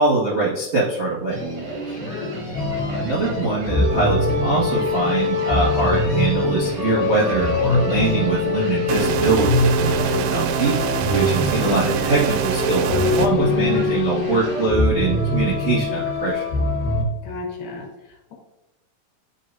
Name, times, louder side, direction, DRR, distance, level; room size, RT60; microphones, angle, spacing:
voice 1, 0.0-1.4 2.9-10.7 11.1-16.4, right 3 dB, 30° right, -9 dB, 1.4 m, -23 dB
sound 1, 1.3-14.7, right 2 dB, 60° right, 1.1 m, -32 dB
voice 2, 1.8-2.5 10.1-10.6 17.2-18.3, left 3 dB, 70° left, -1 dB, 2.6 m, -33 dB
sound 2, 2.5-17.0, left 3 dB, 85° left, 2.8 m, -23 dB
sound 3, 8.9-13.3, right 9 dB, 80° right, 1.9 m, -25 dB
11.0 x 3.8 x 2.8 m, 0.97 s
omnidirectional pair, 4.2 m